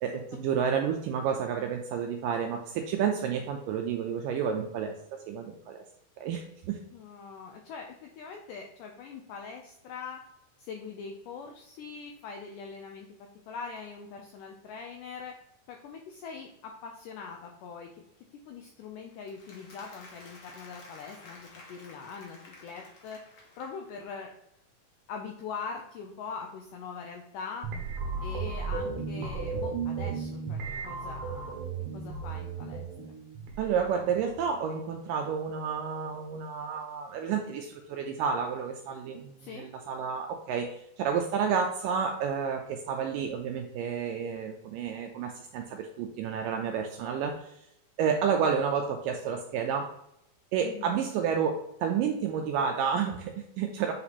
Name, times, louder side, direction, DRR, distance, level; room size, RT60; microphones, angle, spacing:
voice 1, 0.0-5.8 6.2-6.8 33.6-47.5 48.0-49.9 50.5-53.9, right 7 dB, 80° right, 3 dB, 1.9 m, -30 dB
voice 2, 6.9-10.2 10.6-15.3 15.7-17.9 18.5-23.2 23.6-24.3 25.1-27.7 28.2-31.6 31.9-32.8 39.4-39.7 50.6-51.0, left 5 dB, 85° left, 2 dB, 1.8 m, -42 dB
Applause, 19.1-24.1, left 2 dB, 65° left, 1.3 m, -52 dB
sound 1, 27.6-34.5, right 5 dB, 65° right, 2.1 m, -35 dB
7.9 x 2.9 x 4.1 m, 0.78 s
omnidirectional pair, 4.3 m